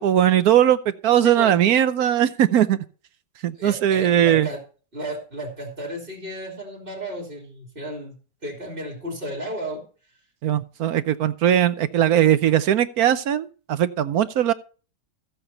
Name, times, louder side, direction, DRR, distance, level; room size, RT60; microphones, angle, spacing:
voice 1, 0.0-2.8 3.4-4.5 10.4-14.5, right 10 dB, 70° right, 1.1 m, -19 dB
voice 2, 1.2-1.6 3.6-4.6 4.9-8.1 8.4-9.8, right 1 dB, 30° right, 3.3 m, -33 dB
15.0 x 7.9 x 4.2 m
omnidirectional pair, 1.8 m